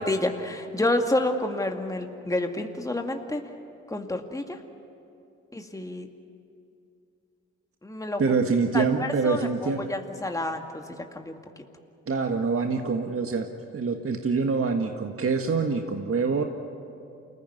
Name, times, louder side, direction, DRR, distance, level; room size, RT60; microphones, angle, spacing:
voice 1, 0.0-3.4 3.9-4.6 5.5-6.1 7.8-8.2 8.7-10.8 11.1-11.4, left 1 dB, 10° left, 4 dB, 2.1 m, -29 dB
voice 2, 8.2-9.9 12.1-13.5 13.7-16.4, right 4 dB, 40° right, 4 dB, 1.7 m, -25 dB
28.5 x 15.5 x 9.5 m, 2.7 s
hypercardioid pair, 45°, 34 cm